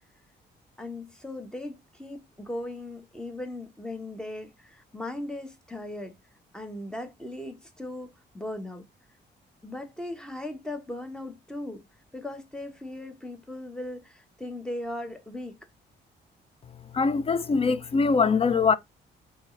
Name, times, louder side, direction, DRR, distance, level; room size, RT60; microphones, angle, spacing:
voice 1, 0.8-6.1 6.5-8.9 9.6-11.8 12.1-15.6, left 1 dB, 5° left, 1.0 m, -38 dB
voice 2, 16.9-18.8, left 5 dB, 30° left, 0.4 m, -22 dB
5.1 x 2.4 x 3.1 m
cardioid pair, 100°, 18 cm